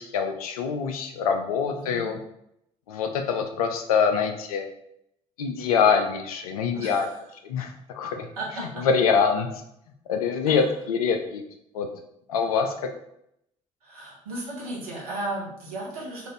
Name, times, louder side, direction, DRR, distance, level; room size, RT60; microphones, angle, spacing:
voice 1, 0.0-2.2 2.9-4.7 5.4-7.1 7.4-8.3 8.8-9.5 10.1-11.4 11.7-11.9 12.3-12.7, left 6 dB, 75° left, 5 dB, 0.5 m, -24 dB
voice 2, 1.7-2.1 6.7-7.2 8.4-8.9 10.5-10.7 13.8-16.3, right 2 dB, 75° right, -5 dB, 1.1 m, -35 dB
3.6 x 2.5 x 3.2 m, 0.77 s
figure-of-eight pair, 50°, 19 cm